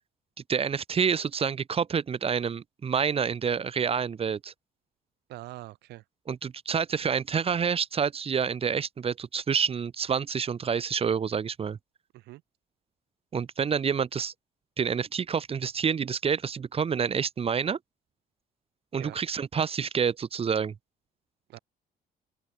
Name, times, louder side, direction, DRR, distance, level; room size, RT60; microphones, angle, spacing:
voice 1, 0.5-4.5 6.3-11.8 13.3-14.3 14.8-17.8 18.9-20.7, right 6 dB, 35° right, 1.6 m, -28 dB
voice 2, 5.3-6.0 12.1-12.4 18.9-19.2 21.5-21.6, right 18 dB, 80° right, 1.8 m, -43 dB
open air
cardioid pair, 110°, 17 cm